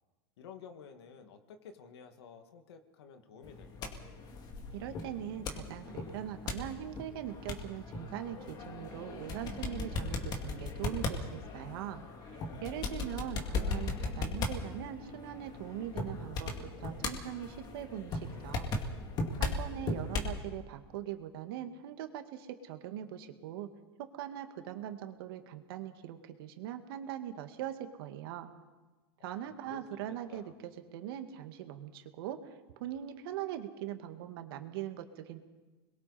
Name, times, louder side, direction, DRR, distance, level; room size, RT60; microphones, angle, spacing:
voice 1, 0.4-4.0 29.4-30.5, left 6 dB, 80° left, 6 dB, 2.2 m, -52 dB
sound 1, 3.4-20.4, left 3 dB, 30° left, 2.4 m, -38 dB
voice 2, 4.7-12.0 12.3-18.7 19.4-23.7 24.0-28.5 29.2-35.4, right 11 dB, 65° right, 7 dB, 1.9 m, -41 dB
29.0 x 21.5 x 4.3 m, 1.2 s
supercardioid pair, 145°, 13 cm